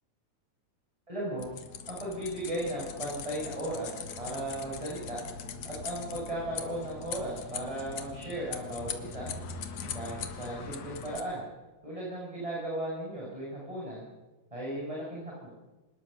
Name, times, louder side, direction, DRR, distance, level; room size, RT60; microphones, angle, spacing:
voice 1, 1.1-1.5 1.9-5.2 5.6-9.3 9.9-11.4 11.8-14.1 14.5-15.5, right 1 dB, 10° right, -5 dB, 7.1 m, -36 dB
sound 1, 1.4-11.2, left 6 dB, 75° left, 3.1 m, -41 dB
25.0 x 20.5 x 6.8 m, 1.1 s
omnidirectional pair, 3.5 m